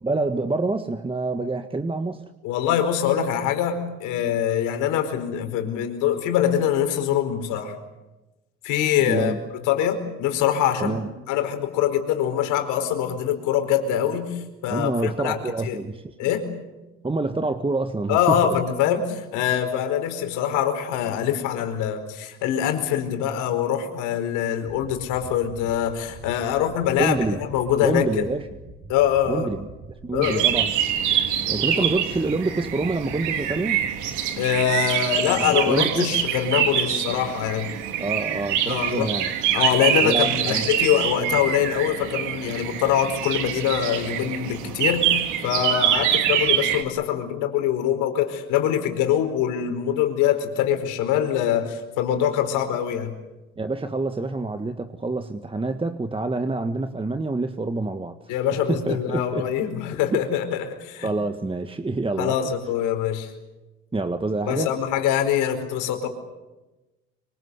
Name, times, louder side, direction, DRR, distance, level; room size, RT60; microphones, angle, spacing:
voice 1, 0.0-2.3 9.0-9.4 10.8-11.1 14.7-16.3 17.0-18.6 27.0-27.4 27.8-28.5 29.3-29.7 30.0-30.7 31.5-33.8 35.4-36.1 38.0-39.3 40.0-40.7 53.6-58.2 58.5-59.5 60.1-60.2 61.0-62.4 63.9-64.7, right 3 dB, 15° right, 8 dB, 1.7 m, -27 dB
voice 2, 2.4-7.7 8.6-9.3 9.6-11.0 11.3-15.8 16.2-16.4 18.1-27.2 27.5-28.3 28.9-29.5 30.1-30.5 31.8-31.9 34.4-37.7 38.6-39.1 39.5-53.1 58.3-61.1 62.2-63.3 64.5-66.1, left 10 dB, 75° left, 6 dB, 4.7 m, -24 dB
sound 1, 24.6-34.2, right 2 dB, 45° right, 6.6 m, -44 dB
sound 2, 30.2-46.8, right 10 dB, 75° right, 3.0 m, -25 dB
25.5 x 24.5 x 8.2 m, 1.1 s
supercardioid pair, 70°, 30 cm